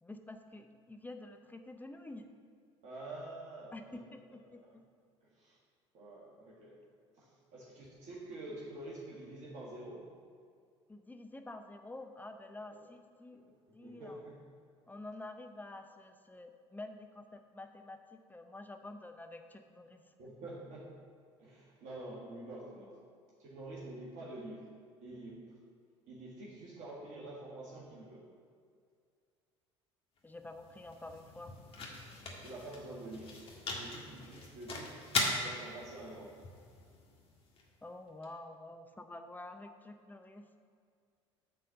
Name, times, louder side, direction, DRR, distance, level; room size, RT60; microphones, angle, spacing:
voice 1, 0.0-2.3 3.7-4.6 10.9-13.4 13.7-14.2 14.9-20.1 30.2-31.5 37.8-40.4, left 2 dB, 10° left, 6 dB, 0.6 m, -48 dB
voice 2, 2.8-4.0 4.6-4.7 5.2-5.6 5.9-6.8 7.1-10.0 12.7-12.8 13.3-13.4 13.7-14.4 20.2-20.9 21.4-22.9 23.4-24.7 25.0-25.6 26.1-28.2 32.4-33.3 33.7-35.0 35.3-36.3, right 2 dB, 55° right, -6 dB, 1.8 m, -47 dB
sound 1, 30.2-38.3, left 2 dB, 40° left, 1.7 m, -40 dB
8.6 x 4.3 x 6.4 m, 2.2 s
hypercardioid pair, 65°, 15 cm